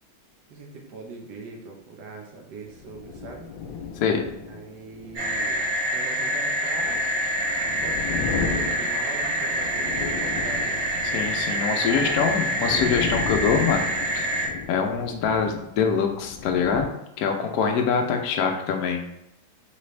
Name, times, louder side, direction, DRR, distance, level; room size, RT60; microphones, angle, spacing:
voice 1, 0.5-3.5 4.2-7.1 7.8-10.8 11.7-12.5, right 3 dB, 65° right, 0 dB, 1.4 m, -41 dB
sound 1, 2.6-16.9, left 5 dB, 85° left, 1.4 m, -35 dB
sound 2, 5.1-14.5, equal, 35° right, 1.2 m, -26 dB
voice 2, 11.0-14.3 14.7-19.0, left 6 dB, 70° left, 3 dB, 0.9 m, -24 dB
4.1 x 3.3 x 3.2 m, 0.83 s
omnidirectional pair, 2.1 m